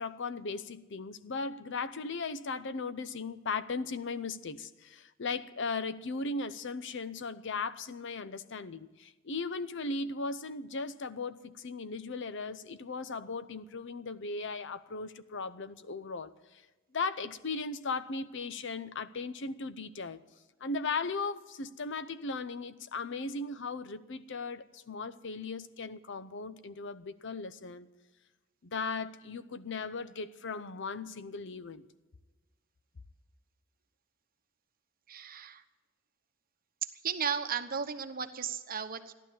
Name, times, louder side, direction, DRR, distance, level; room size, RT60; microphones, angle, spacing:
voice 1, 0.0-16.3 16.9-20.2 20.6-27.9 28.6-31.9, left 4 dB, 65° left, 0.7 m, -37 dB
voice 2, 35.1-35.6 37.0-39.1, right 7 dB, 45° right, 1.0 m, -35 dB
15.0 x 11.5 x 7.5 m
head